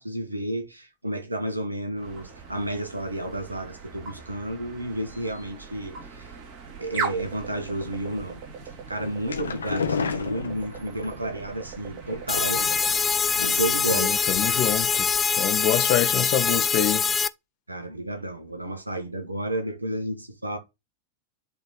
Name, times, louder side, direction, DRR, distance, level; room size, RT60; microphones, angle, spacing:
voice 1, 0.0-6.3 6.8-8.4 8.9-12.6 13.3-14.1 17.7-20.6, right 1 dB, 80° right, 1.5 m, -31 dB
sound 1, 2.0-15.4, right 5 dB, 40° right, 3.5 m, -40 dB
sound 2, 9.0-11.1 12.1-13.0 13.4-13.8 14.1-14.2 14.5-14.6, left 5 dB, 70° left, 1.1 m, -31 dB
sound 3, 12.3-17.3, left 5 dB, 15° left, 0.5 m, -24 dB
voice 2, 14.0-15.1 15.3-17.0, left 13 dB, 45° left, 1.1 m, -26 dB
10.5 x 4.0 x 4.1 m
figure-of-eight pair, 90°, 0 cm